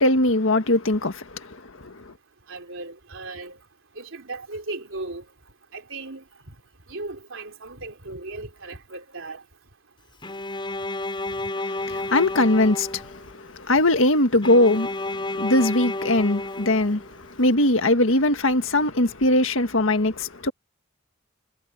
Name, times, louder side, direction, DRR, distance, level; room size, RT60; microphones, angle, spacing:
voice 1, 0.0-2.1 11.6-20.5, left 1 dB, 75° left, 1.8 m, -21 dB
voice 2, 2.5-3.6 4.0-5.2 5.7-6.2 6.9-9.4, right 2 dB, 75° right, 3.6 m, -36 dB
Bowed string instrument, 10.2-13.4 14.4-17.3, left 2 dB, 25° left, 5.8 m, -31 dB
head